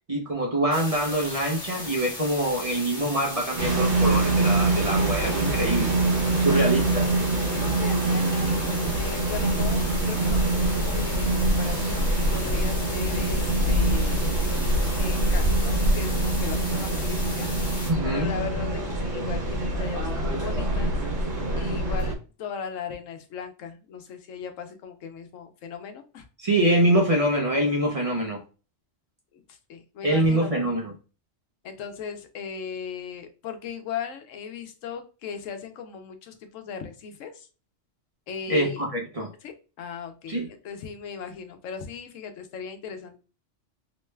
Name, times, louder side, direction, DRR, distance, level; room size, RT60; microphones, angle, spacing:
voice 1, 0.1-6.0 6.4-7.0 17.9-18.3 26.4-28.4 30.0-30.9 38.5-39.3 40.3-40.5, right 1 dB, 35° right, -2 dB, 0.6 m, -24 dB
sound 1, 0.7-17.9, left 2 dB, 45° left, 1.2 m, -37 dB
sound 2, 3.6-22.1, right 2 dB, 65° right, 1.2 m, -24 dB
voice 2, 7.5-14.3 15.0-17.5 18.0-21.0 21.3-26.3 29.3-30.5 31.6-37.5 38.3-38.8 39.4-43.2, left 6 dB, 85° left, 7 dB, 1.0 m, -38 dB
3.0 x 2.2 x 3.2 m, 0.34 s
omnidirectional pair, 1.3 m